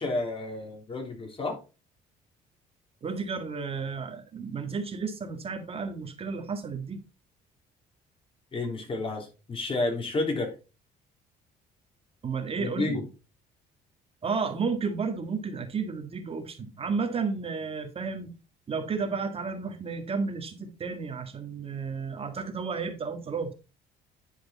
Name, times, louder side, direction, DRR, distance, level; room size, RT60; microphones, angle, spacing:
voice 1, 0.0-1.6 8.5-10.5 12.6-13.0, left 2 dB, 30° left, 3 dB, 3.1 m, -31 dB
voice 2, 3.0-7.0 12.2-13.0 14.2-18.3 18.7-23.5, right 5 dB, 35° right, 6 dB, 1.7 m, -32 dB
10.5 x 5.1 x 4.1 m, 0.31 s
cardioid pair, 110°, 17 cm